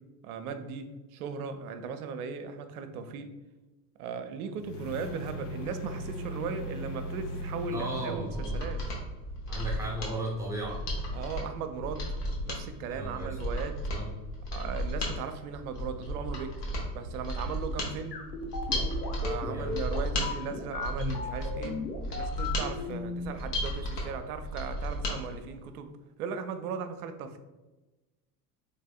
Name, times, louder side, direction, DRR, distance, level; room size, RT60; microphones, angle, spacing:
voice 1, 0.2-0.8 1.1-3.3 4.0-8.8 11.1-12.0 12.5-13.8 14.5-16.6 16.9-18.2 19.2-21.8 22.1-25.9 26.2-27.4, right 6 dB, 65° right, 9 dB, 0.5 m, -37 dB
sound 1, 4.6-8.2, equal, 30° left, 0.4 m, -37 dB
voice 2, 7.7-8.6 9.5-10.8 12.9-13.4 13.9-14.1 19.4-19.8, right 1 dB, 5° right, -4 dB, 0.6 m, -36 dB
Mechanisms, 8.2-25.2 25.5-25.6, equal, 70° left, 1.1 m, -34 dB
sound 2, 18.1-23.3, left 4 dB, 90° left, 0.7 m, -36 dB
3.3 x 3.2 x 2.3 m, 1.1 s
figure-of-eight pair, 75°, 49 cm